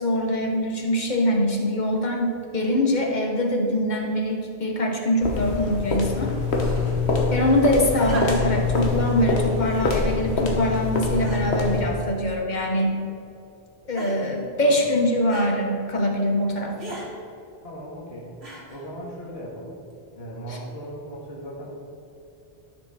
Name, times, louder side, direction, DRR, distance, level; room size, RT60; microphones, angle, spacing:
voice 1, 0.0-6.3 7.3-13.0 13.9-17.0 20.5-20.6, left 1 dB, 45° left, 1 dB, 1.2 m, -23 dB
sound 1, 5.2-12.0, left 4 dB, 90° left, 1.3 m, -24 dB
sound 2, 6.5-7.0 8.0-8.6 9.6-9.9 10.6-10.7 11.2-11.7 12.5-13.0 14.0-14.4 15.3-15.6 16.8-17.1 18.4-18.9 19.9-20.0, right 2 dB, 75° right, 2.1 m, -39 dB
voice 2, 7.2-7.6 14.6-14.9 17.6-18.3 18.7-19.8 20.1-21.7, equal, 70° left, -4 dB, 2.1 m, -38 dB
12.5 x 6.2 x 4.2 m, 2.7 s
omnidirectional pair, 1.1 m